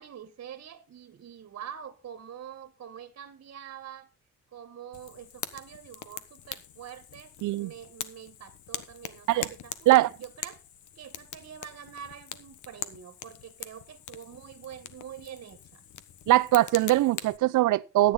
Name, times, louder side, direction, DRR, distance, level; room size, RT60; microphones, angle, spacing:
voice 1, 0.0-4.1 4.5-10.6 10.9-15.8, right 9 dB, 55° right, 1.6 m, -45 dB
Fire, 4.9-17.4, left 10 dB, 75° left, 1.3 m, -43 dB
voice 2, 16.3-18.1, right 16 dB, 80° right, 0.7 m, -22 dB
14.0 x 9.6 x 4.1 m
cardioid pair, 90°, 30 cm